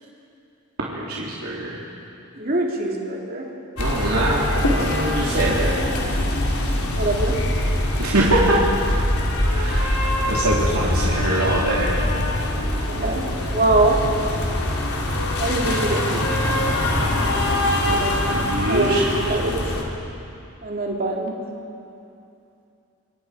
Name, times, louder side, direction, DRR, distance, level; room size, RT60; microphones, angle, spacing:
voice 1, 0.9-1.8 3.8-5.8 8.0-8.8 9.5-12.0 17.8-19.1, right 1 dB, 85° right, -6 dB, 3.0 m, -23 dB
voice 2, 2.3-3.5 6.9-7.4 12.8-14.0 15.4-16.6 17.9-19.7 20.6-21.3, right 2 dB, 40° right, -1 dB, 2.9 m, -24 dB
sound 1, 3.8-19.8, left 1 dB, 85° left, 3.4 m, -23 dB
27.5 x 24.0 x 4.9 m, 2.7 s
head